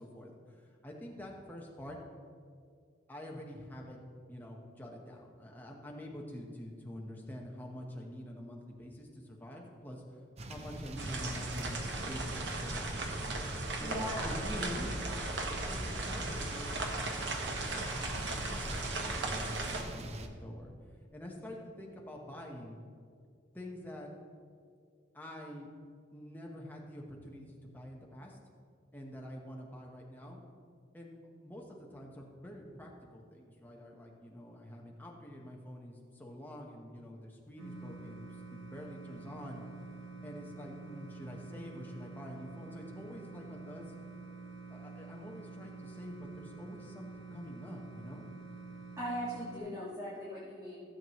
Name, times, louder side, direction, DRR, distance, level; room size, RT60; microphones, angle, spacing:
voice 1, 0.0-2.0 3.1-4.0 4.3-10.0 10.5-12.9 13.8-14.9 15.4-16.8 17.4-20.7 21.1-22.8 23.5-24.1 25.1-25.7 26.1-28.4 28.9-30.4 30.9-31.2 31.4-39.6 40.2-43.9 44.7-48.3, equal, 10° left, -1 dB, 1.1 m, -47 dB
sound 1, 10.4-20.3, right 1 dB, 35° right, 0.6 m, -44 dB
sound 2, 11.0-19.8, right 2 dB, 70° right, 1.1 m, -37 dB
voice 2, 13.8-14.3 49.0-50.8, equal, 20° right, -10 dB, 1.9 m, -39 dB
sound 3, 37.6-49.6, right 4 dB, 90° right, 2.2 m, -48 dB
15.5 x 7.5 x 3.1 m, 2.2 s
head